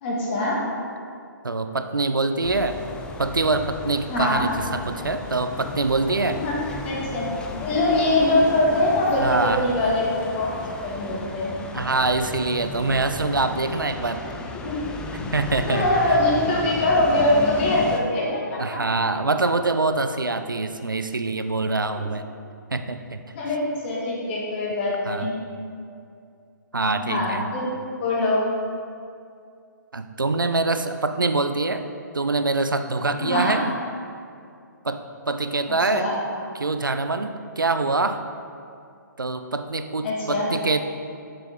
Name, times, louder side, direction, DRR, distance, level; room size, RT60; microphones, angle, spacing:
voice 1, 0.0-0.6 4.1-4.5 6.3-6.6 6.8-7.3 7.6-10.5 10.8-11.6 14.7-14.8 15.5-18.6 21.9-22.0 23.3-25.3 26.9-27.6 27.9-28.5 33.2-33.6 35.9-36.2 40.0-40.6, left 1 dB, 35° left, -4 dB, 1.9 m, -23 dB
voice 2, 1.4-2.8 3.2-6.4 9.2-9.7 11.7-14.3 15.3-15.9 18.6-22.3 22.7-23.2 25.1-25.3 26.7-27.4 29.9-31.9 32.1-33.8 34.8-36.1 36.5-38.2 39.2-40.8, right 3 dB, 90° right, 9 dB, 0.5 m, -24 dB
sound 1, 2.4-18.0, left 3 dB, 10° left, 0.4 m, -35 dB
7.1 x 6.8 x 3.8 m, 2.4 s
figure-of-eight pair, 130°, 11 cm